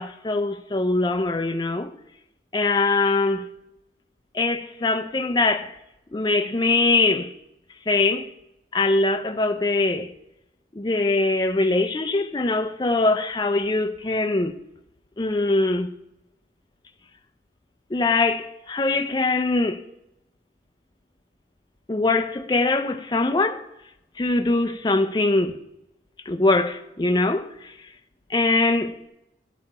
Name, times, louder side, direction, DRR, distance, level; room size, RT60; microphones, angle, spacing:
voice 1, 0.0-1.9 2.5-3.5 4.3-5.8 6.1-7.3 7.9-8.3 8.7-10.1 10.7-14.5 15.2-15.9 17.9-19.8 21.9-23.6 24.2-25.6 26.3-27.7 28.3-29.0, left 2 dB, 25° left, 0.5 m, -22 dB
9.9 x 6.2 x 4.3 m
head